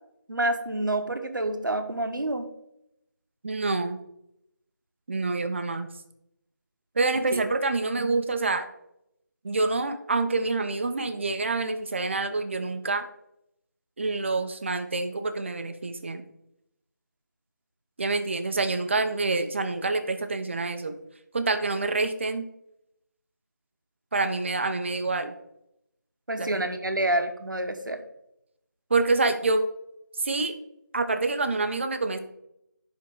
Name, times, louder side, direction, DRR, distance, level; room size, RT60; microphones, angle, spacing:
voice 1, 0.3-2.5 7.3-7.4 8.0-8.1 26.3-28.0, right 1 dB, 90° right, 6 dB, 1.1 m, -28 dB
voice 2, 3.4-4.0 5.1-5.9 6.9-8.7 9.4-13.1 14.0-16.2 18.0-20.9 21.3-22.4 24.1-25.3 26.4-26.6 28.9-29.6 30.2-30.5 30.9-32.2, right 3 dB, 40° right, 8 dB, 0.6 m, -27 dB
11.0 x 3.7 x 3.6 m, 0.80 s
figure-of-eight pair, 165°, 10 cm